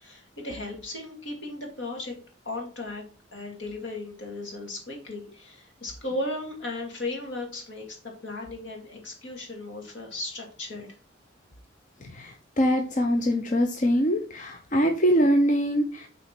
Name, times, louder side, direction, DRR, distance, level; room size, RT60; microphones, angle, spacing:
voice 1, 0.0-2.2 2.4-3.0 3.3-11.0, left 2 dB, 75° left, 1 dB, 2.4 m, -36 dB
voice 2, 12.1-16.1, equal, 40° left, 4 dB, 0.7 m, -23 dB
7.9 x 4.1 x 4.4 m, 0.38 s
head